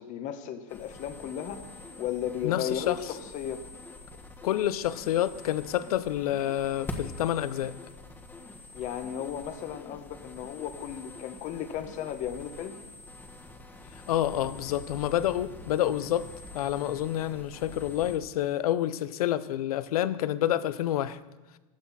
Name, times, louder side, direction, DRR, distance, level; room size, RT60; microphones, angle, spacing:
voice 1, 0.0-1.6 2.0-3.0 3.3-3.6 8.7-12.7, left 9 dB, 40° left, 1.4 m, -35 dB
sound 1, 0.7-18.2, left 2 dB, 10° left, 1.6 m, -45 dB
voice 2, 2.4-3.0 4.4-7.7 14.1-16.3 16.5-21.2, left 12 dB, 75° left, 0.8 m, -28 dB
16.0 x 11.5 x 4.3 m
supercardioid pair, 125°, 19 cm